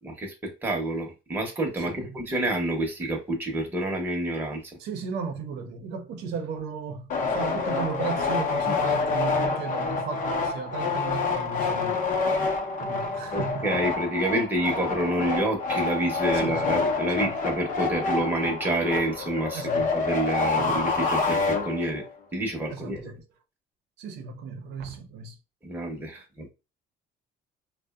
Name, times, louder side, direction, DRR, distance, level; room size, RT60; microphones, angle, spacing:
voice 1, 0.0-4.8 13.3-22.1 22.3-23.1 25.6-26.5, right 1 dB, 10° right, 0.8 m, -28 dB
voice 2, 1.8-2.2 4.8-12.0 12.8-13.8 16.3-16.8 17.1-17.3 19.5-19.9 20.6-20.9 22.7-23.2 24.0-25.4 26.1-26.2, right 5 dB, 85° right, 0.6 m, -35 dB
sound 1, 7.1-22.1, left 4 dB, 50° left, 0.6 m, -27 dB
2.6 x 2.1 x 2.3 m
cardioid pair, 110°, 17 cm